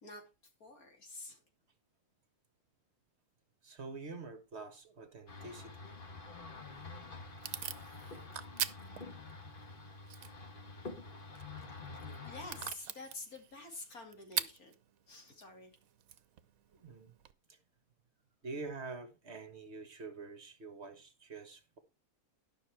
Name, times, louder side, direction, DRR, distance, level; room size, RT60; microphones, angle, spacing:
voice 1, 0.6-1.4 11.9-14.8 15.1-15.7, left 2 dB, 80° left, 3.1 m, -49 dB
voice 2, 3.6-5.8 16.7-17.1 17.5-17.6 18.4-21.8, right 3 dB, 50° right, 1.6 m, -46 dB
sound 1, 5.3-12.7, left 3 dB, 40° left, 1.5 m, -48 dB
Packing tape duct tape / Tearing, 6.5-17.3, right 10 dB, 75° right, 1.2 m, -45 dB
12.5 x 6.1 x 4.5 m
omnidirectional pair, 1.5 m